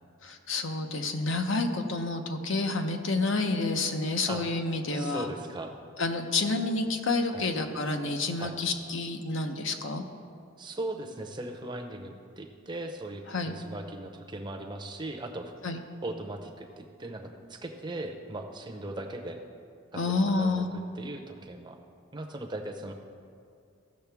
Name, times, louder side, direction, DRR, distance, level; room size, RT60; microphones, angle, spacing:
voice 1, 0.2-5.3 6.0-10.0 13.3-13.5 15.6-15.8 19.9-20.7, left 3 dB, 65° left, 5 dB, 0.7 m, -29 dB
voice 2, 4.9-5.7 7.3-7.5 8.4-8.6 10.6-15.5 16.0-19.4 19.9-20.6 20.9-21.8 22.1-22.9, right 2 dB, 20° right, 3 dB, 0.6 m, -38 dB
15.5 x 6.6 x 3.5 m, 2.4 s
head